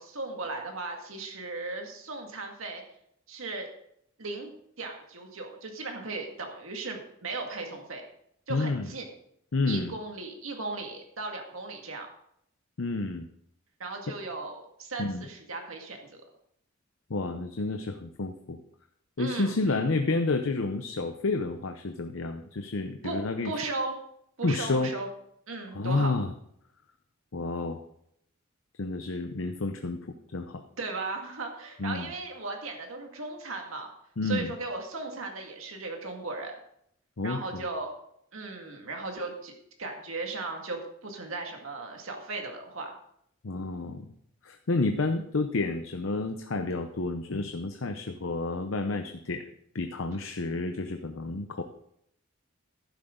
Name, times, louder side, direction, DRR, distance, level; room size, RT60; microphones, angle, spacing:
voice 1, 0.0-2.8 3.3-3.7 4.2-4.5 4.8-8.0 8.5-9.1 9.7-12.1 13.8-16.2 19.2-19.6 23.0-23.2 23.4-24.0 24.4-25.1 25.5-26.1 30.8-33.9 34.2-36.5 37.2-37.9 38.3-39.5 39.8-43.0, right 3 dB, 80° right, 2 dB, 2.0 m, -36 dB
voice 2, 8.5-8.9 9.5-9.9 12.8-13.3 15.0-15.3 17.1-18.6 19.2-23.5 24.4-24.9 25.7-26.3 27.3-27.8 28.8-30.0 30.3-30.6 31.8-32.1 34.2-34.5 37.2-37.6 43.4-44.1 44.4-49.5 49.7-51.6, left 3 dB, 70° left, 7 dB, 0.7 m, -30 dB
11.5 x 10.0 x 3.8 m, 0.71 s
head